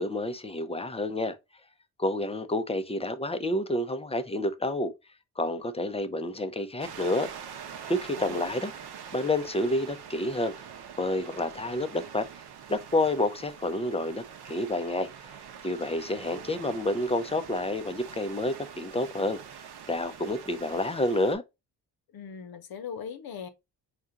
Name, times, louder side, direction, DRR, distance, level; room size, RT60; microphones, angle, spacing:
voice 1, 0.0-1.4 2.0-4.9 5.4-7.3 7.9-8.7 9.1-10.5 11.0-12.3 12.7-15.1 15.6-19.4 19.9-21.4, left 1 dB, 15° left, 0.5 m, -29 dB
sound 1, 6.8-21.3, right 8 dB, 75° right, 0.8 m, -44 dB
voice 2, 22.1-23.5, left 7 dB, 65° left, 0.8 m, -39 dB
4.3 x 2.4 x 3.6 m
cardioid pair, 75°, 39 cm